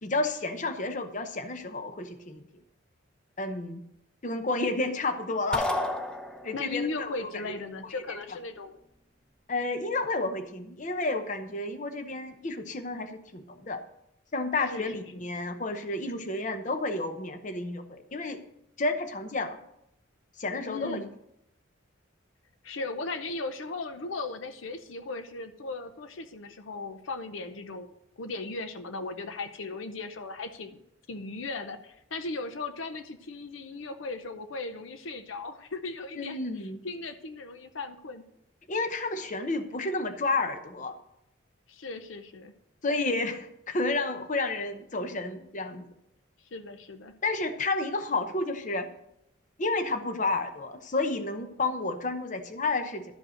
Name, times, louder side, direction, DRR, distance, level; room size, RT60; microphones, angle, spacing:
voice 1, 0.0-2.4 3.4-3.8 4.2-5.7 6.4-7.3 9.5-13.8 14.3-18.4 18.8-19.6 20.4-21.0 36.2-36.8 38.7-40.9 42.8-45.9 47.2-48.9 49.6-53.1, left 2 dB, 40° left, 8 dB, 0.8 m, -31 dB
sound 1, 5.5-6.8, left 1 dB, 5° left, 0.7 m, -31 dB
voice 2, 6.5-8.8 14.5-15.3 20.7-21.1 22.6-30.8 31.1-38.2 41.7-42.5 46.5-47.2, left 3 dB, 80° left, 9 dB, 0.7 m, -37 dB
12.5 x 5.2 x 6.4 m, 0.80 s
head